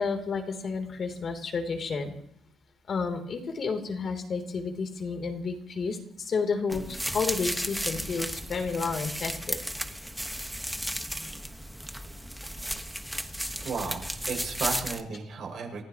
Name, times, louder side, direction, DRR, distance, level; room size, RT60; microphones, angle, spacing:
voice 1, 0.0-2.1 2.9-9.6, left 4 dB, 50° left, 5 dB, 3.2 m, -31 dB
sound 1, 6.7-15.0, equal, ahead, 1.3 m, -34 dB
voice 2, 13.6-15.8, right 4 dB, 65° right, 2 dB, 6.1 m, -34 dB
28.5 x 15.0 x 3.0 m, 0.67 s
cardioid pair, 90°, 0 cm